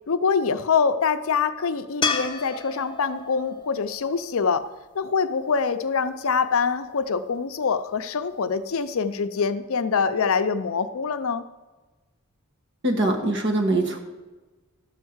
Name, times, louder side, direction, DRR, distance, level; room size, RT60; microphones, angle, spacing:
voice 1, 0.1-4.7 4.9-11.4, left 5 dB, 65° left, 11 dB, 0.5 m, -24 dB
sound 1, 2.0-5.3 8.5-8.6, left 4 dB, 20° left, 0.8 m, -31 dB
voice 2, 12.8-14.0, right 2 dB, 55° right, 3 dB, 1.4 m, -22 dB
12.0 x 4.6 x 7.9 m, 1.2 s
head